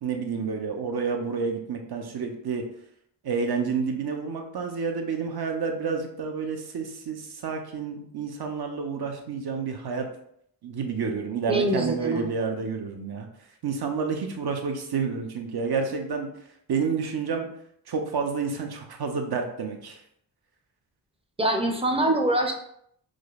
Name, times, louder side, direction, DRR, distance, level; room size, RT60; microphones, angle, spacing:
voice 1, 0.0-2.7 3.2-10.1 10.6-13.3 13.6-16.3 16.7-17.5 17.9-20.0, right 5 dB, 55° right, 4 dB, 0.7 m, -29 dB
voice 2, 11.5-12.3 21.4-22.5, right 1 dB, 15° right, 2 dB, 0.5 m, -24 dB
4.9 x 2.0 x 2.4 m, 0.69 s
cardioid pair, 55°, 46 cm